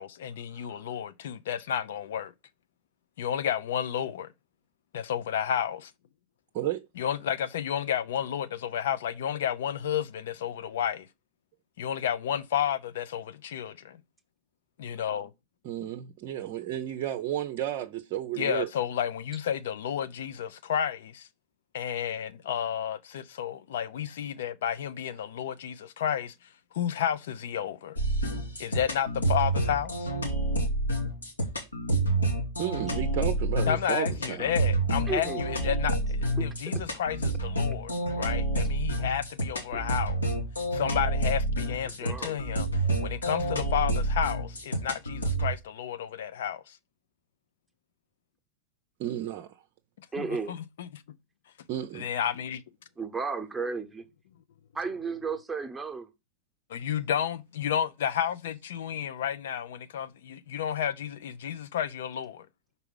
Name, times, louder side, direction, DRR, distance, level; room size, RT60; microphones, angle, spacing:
voice 1, 0.0-2.3 3.2-4.3 4.9-5.9 7.0-11.1 11.8-14.0 14.8-15.3 18.4-21.3 21.7-26.3 26.7-28.0 28.6-30.1 33.7-40.3 40.7-42.7 43.0-46.8 50.0-51.0 51.9-52.6 56.7-62.5, left 9 dB, 60° left, 0.6 m, -31 dB
voice 2, 6.5-6.9 15.6-18.7 32.6-34.5 49.0-49.5 51.7-52.1, right 12 dB, 45° right, 0.6 m, -32 dB
sound 1, 28.0-45.5, right 1 dB, 80° left, 1.9 m, -28 dB
voice 3, 35.1-35.4 36.4-36.5 39.7-39.8 41.9-42.4 50.1-50.6 53.0-54.1 54.7-56.1, right 5 dB, 10° right, 1.0 m, -33 dB
5.8 x 4.1 x 5.4 m
figure-of-eight pair, 90°, 0 cm